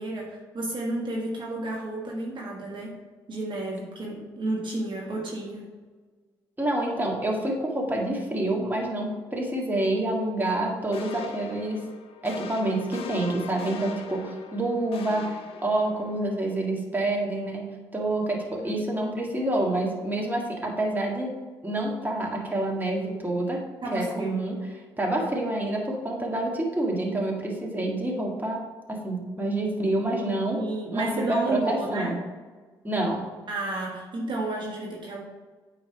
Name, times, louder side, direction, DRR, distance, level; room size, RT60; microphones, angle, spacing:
voice 1, 0.0-2.9 3.3-5.7 18.6-18.8 23.8-24.4 30.6-32.1 33.5-35.2, right 2 dB, 45° right, -2 dB, 1.3 m, -31 dB
voice 2, 6.6-11.8 12.2-15.4 15.6-21.3 21.6-23.6 23.9-24.6 25.0-30.6 30.9-32.2 32.8-33.3, right 1 dB, 15° right, -1 dB, 1.7 m, -27 dB
sound 1, 10.9-16.2, left 6 dB, 60° left, 0.7 m, -41 dB
8.7 x 3.2 x 4.8 m, 1.4 s
hypercardioid pair, 50°, 11 cm